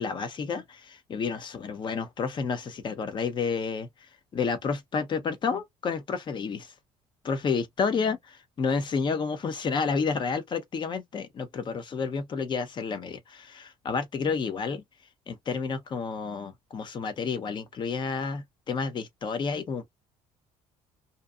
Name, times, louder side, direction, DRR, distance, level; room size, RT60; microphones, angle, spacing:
voice 1, 0.0-3.9 4.3-6.7 7.2-14.8 15.3-19.9, left 5 dB, 40° left, 0.7 m, -30 dB
2.7 x 2.2 x 2.3 m
cardioid pair, 110°, 13 cm